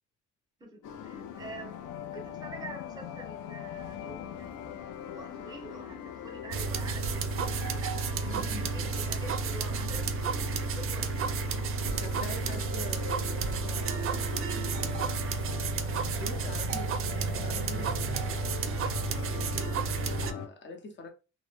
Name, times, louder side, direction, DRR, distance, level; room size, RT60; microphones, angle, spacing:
voice 1, 0.6-1.8 2.1-4.5 5.1-8.1 8.7-11.3 19.1-19.4, right 2 dB, 15° right, 0.9 m, -46 dB
sound 1, 0.8-20.5, left 8 dB, 85° left, 0.5 m, -41 dB
sound 2, 6.5-20.3, right 5 dB, 45° right, 0.4 m, -31 dB
voice 2, 8.1-9.1 11.9-14.9 16.1-17.1 17.4-18.3 19.3-21.1, left 2 dB, 40° left, 0.7 m, -45 dB
2.1 x 2.0 x 3.2 m
cardioid pair, 90°, 30 cm